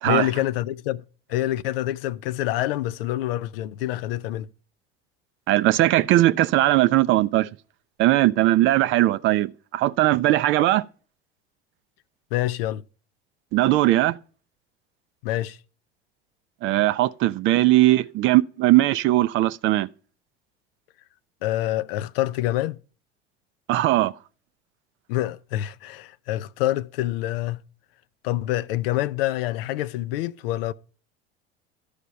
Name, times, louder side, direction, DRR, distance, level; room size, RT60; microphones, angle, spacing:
voice 1, 0.1-1.0 1.3-4.5 12.3-12.8 15.2-15.6 21.4-22.8 25.1-27.6 28.2-30.7, left 14 dB, 60° left, 0.5 m, -26 dB
voice 2, 5.5-7.5 8.0-10.8 13.5-14.2 16.6-19.9 23.7-24.1, right 16 dB, 40° right, 0.4 m, -19 dB
12.0 x 5.0 x 5.6 m
figure-of-eight pair, 70°, 33 cm